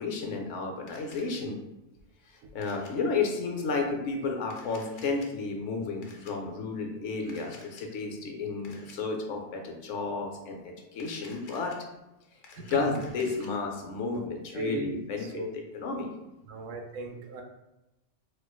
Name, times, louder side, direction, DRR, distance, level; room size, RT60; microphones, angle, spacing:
voice 1, 0.0-1.6 2.3-11.8 12.6-15.4 15.7-16.1, left 4 dB, 75° left, 2 dB, 0.9 m, -32 dB
Camera, 0.9-1.4 2.6-2.9 4.4-5.3 6.0-6.3 7.3-7.8 8.6-8.9 10.9-11.8 12.2-13.5, left 3 dB, 60° left, 0.5 m, -52 dB
voice 2, 12.6-12.9 14.1-14.2 14.5-14.9 15.2-15.5 16.5-17.4, right 3 dB, 90° right, 4 dB, 0.9 m, -37 dB
4.4 x 2.5 x 2.3 m, 0.94 s
omnidirectional pair, 1.3 m